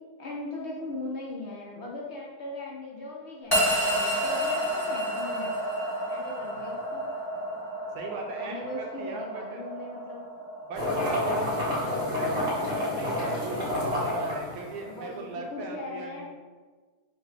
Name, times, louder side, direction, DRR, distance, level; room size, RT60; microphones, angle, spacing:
voice 1, 0.2-5.6 6.1-7.0 8.4-10.5 12.7-13.4 14.9-16.3, left 2 dB, 55° left, -3 dB, 0.9 m, -39 dB
sound 1, 3.5-13.9, equal, 15° left, 1.0 m, -31 dB
voice 2, 7.9-9.6 10.6-11.8 12.1-16.3, right 3 dB, 85° right, 1 dB, 1.2 m, -39 dB
sound 2, 10.7-15.1, left 1 dB, 65° right, 1.8 m, -29 dB
5.6 x 2.2 x 3.4 m, 1.4 s
omnidirectional pair, 1.6 m